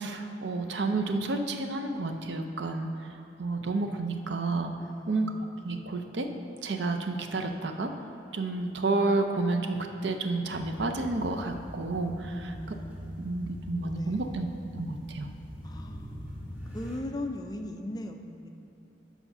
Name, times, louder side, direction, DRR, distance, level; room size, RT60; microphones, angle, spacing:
voice 1, 0.0-2.9 3.4-4.7 5.1-5.3 5.6-6.3 6.6-7.9 8.3-12.5 13.2-14.5 14.7-15.3, right 3 dB, 70° right, 5 dB, 0.6 m, -30 dB
voice 2, 4.8-5.5 12.3-14.7 15.6-18.5, left 1 dB, 20° left, 4 dB, 0.4 m, -40 dB
sound 1, 10.5-17.0, equal, 10° right, 1.1 m, -43 dB
7.1 x 5.7 x 5.5 m, 2.9 s
head